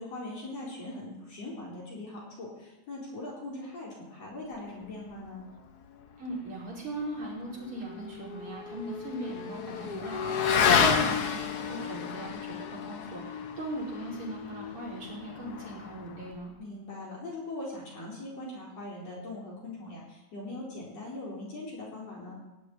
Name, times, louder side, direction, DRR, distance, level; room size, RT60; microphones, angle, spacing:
voice 1, 0.0-5.4 16.6-22.4, left 2 dB, 55° left, -4 dB, 5.4 m, -41 dB
voice 2, 6.2-16.5, right 1 dB, 45° right, -4 dB, 5.9 m, -39 dB
Motorcycle / Accelerating revving vroom, 7.7-16.4, left 6 dB, 80° left, 0.8 m, -30 dB
17.0 x 8.4 x 9.7 m, 1.0 s
omnidirectional pair, 3.4 m